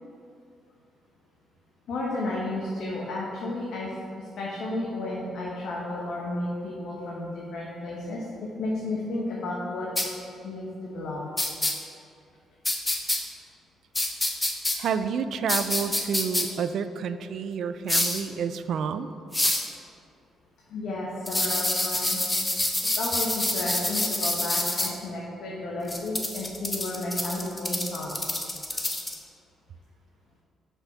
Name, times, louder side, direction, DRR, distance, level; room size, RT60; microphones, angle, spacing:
voice 1, 1.9-3.9 4.4-8.2 8.6-9.9 10.4-11.3 20.7-22.2 23.0-28.2, left 2 dB, 75° left, -4 dB, 1.0 m, -32 dB
sound 1, 10.0-10.1 11.4-11.7 12.6-13.2 13.9-14.8 15.5-16.4 17.9-18.2 19.3-19.7 21.3-24.9 25.9-29.2, left 1 dB, 15° left, 0.8 m, -26 dB
voice 2, 14.8-19.1, right 6 dB, 65° right, 11 dB, 0.3 m, -29 dB
5.1 x 4.5 x 5.8 m, 2.5 s
cardioid pair, 90°, 0 cm